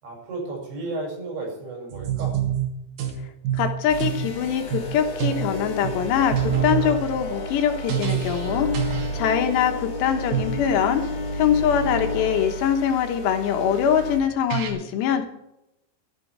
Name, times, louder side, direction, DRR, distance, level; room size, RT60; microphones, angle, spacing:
voice 1, 0.0-2.4, right 2 dB, 80° right, -1 dB, 7.9 m, -33 dB
sound 1, 1.9-3.2 3.4-4.3 4.7-4.9 5.2-5.5 5.8-6.0 6.3-7.0 7.9-8.5 8.7-9.2 10.3-10.6 14.0-14.1 14.5-14.7, right 10 dB, 60° right, 3.2 m, -26 dB
voice 2, 3.5-11.0 11.3-15.2, left 8 dB, 75° left, 5 dB, 3.2 m, -23 dB
sound 2, 3.9-14.2, left 1 dB, 50° left, 2.6 m, -31 dB
sound 3, 4.8-12.4, left 1 dB, 35° left, 2.9 m, -39 dB
13.0 x 12.0 x 4.6 m, 0.87 s
omnidirectional pair, 5.2 m